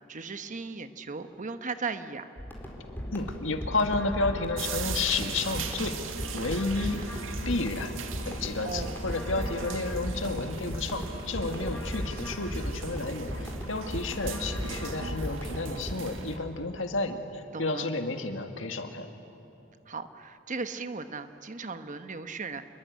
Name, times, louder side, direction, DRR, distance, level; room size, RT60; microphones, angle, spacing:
voice 1, 0.1-2.3 8.6-9.0 17.5-17.9 19.9-22.6, right 4 dB, 40° right, 9 dB, 1.1 m, -37 dB
sound 1, 2.4-16.0, equal, 10° left, 4.3 m, -36 dB
voice 2, 3.1-6.0 6.3-7.0 7.5-7.9 8.3-19.1, left 3 dB, 70° left, 6 dB, 2.0 m, -31 dB
sound 2, 4.6-16.4, right 6 dB, 85° right, 1.9 m, -40 dB
sound 3, 6.8-16.5, equal, 40° left, 4.1 m, -47 dB
28.5 x 21.5 x 9.4 m, 3.0 s
head